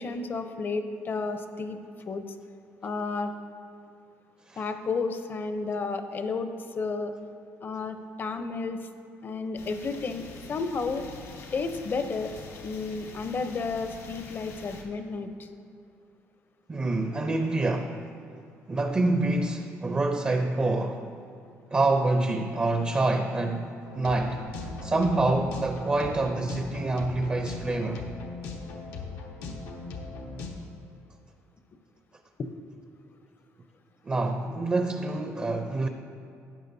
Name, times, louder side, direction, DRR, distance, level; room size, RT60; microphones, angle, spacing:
voice 1, 0.0-1.8 2.1-2.2 2.8-3.3 4.6-7.1 7.6-8.9 9.2-11.0 11.5-12.3 12.6-15.5 32.4-32.5, left 4 dB, 40° left, 8 dB, 0.6 m, -32 dB
sound 1, 9.6-14.8, left 4 dB, 65° left, 1.3 m, -45 dB
voice 2, 16.7-18.1 18.7-21.1 21.7-28.1 34.0-35.9, right 2 dB, 25° right, 6 dB, 0.5 m, -27 dB
sound 2, 23.8-30.5, left 4 dB, 90° left, 1.1 m, -39 dB
sound 3, 24.5-27.1, right 1 dB, 90° right, 0.9 m, -46 dB
12.0 x 8.4 x 2.7 m, 2.6 s
cardioid pair, 105°, 5 cm